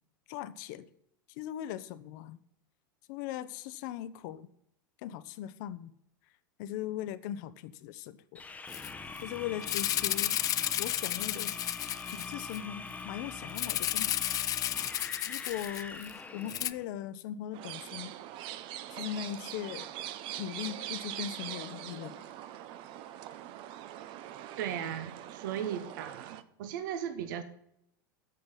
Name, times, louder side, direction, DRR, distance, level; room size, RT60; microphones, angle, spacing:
voice 1, 0.3-0.9 1.4-2.4 3.1-4.5 5.0-5.9 6.6-8.4 9.2-10.3 10.8-11.6 12.1-14.2 15.3-18.1 18.9-19.9 20.4-22.3, left 11 dB, 60° left, 14 dB, 0.7 m, -39 dB
sound 1, 8.3-16.8, left 4 dB, 15° left, 0.8 m, -43 dB
Rattle (instrument), 8.7-8.9 9.2-9.3 9.6-12.6 13.6-16.1 16.5-16.7, left 12 dB, 30° left, 0.4 m, -32 dB
sound 2, 17.5-26.4, right 12 dB, 50° right, 0.7 m, -42 dB
voice 2, 24.6-27.4, right 9 dB, 65° right, 9 dB, 1.1 m, -37 dB
8.3 x 6.8 x 5.7 m, 0.73 s
hypercardioid pair, 100°, 11 cm